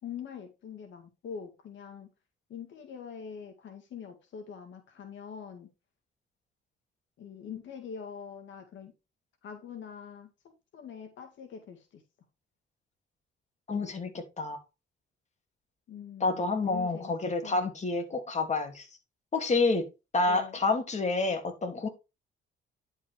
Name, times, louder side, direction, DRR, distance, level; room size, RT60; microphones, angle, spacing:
voice 1, 0.0-2.1 2.5-5.7 7.2-8.9 9.4-12.0 15.9-17.6 20.3-20.6, left 7 dB, 70° left, 2.1 m, -44 dB
voice 2, 13.7-14.6 16.2-18.9 19.3-19.9 20.1-21.9, left 3 dB, 35° left, 2.8 m, -28 dB
10.5 x 5.5 x 3.5 m
cardioid pair, 90°, 20 cm